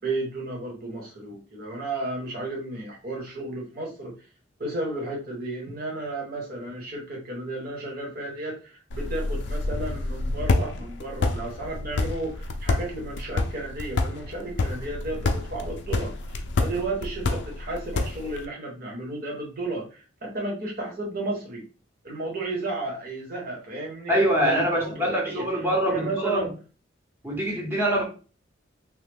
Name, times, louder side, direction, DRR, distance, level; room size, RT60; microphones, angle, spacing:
voice 1, 0.0-4.1 4.6-21.6 22.0-25.5 25.8-26.5, right 2 dB, 50° right, 1.2 m, -33 dB
sound 1, 8.9-18.5, left 3 dB, 65° left, 0.5 m, -28 dB
voice 2, 24.1-26.5 27.2-28.0, right 1 dB, 10° right, 1.0 m, -24 dB
3.2 x 2.2 x 3.4 m
head